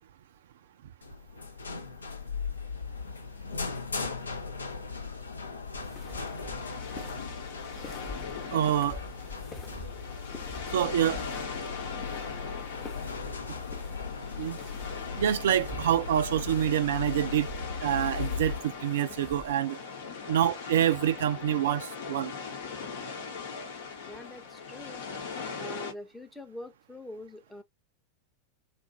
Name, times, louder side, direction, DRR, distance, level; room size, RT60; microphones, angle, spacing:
sound 1, 1.0-18.6, left 5 dB, 75° left, 0.5 m, -38 dB
sound 2, 5.6-19.5, left 3 dB, 25° left, 1.0 m, -47 dB
sound 3, 6.0-25.9, left 5 dB, 55° left, 0.9 m, -40 dB
voice 1, 8.5-9.0 10.7-11.3 14.4-14.6 15.2-17.5 17.8-19.8 20.3-22.3, right 10 dB, 60° right, 0.3 m, -26 dB
voice 2, 24.1-25.0 25.5-27.6, left 1 dB, 5° left, 0.7 m, -44 dB
2.6 x 2.4 x 2.6 m
figure-of-eight pair, 90°, 0 cm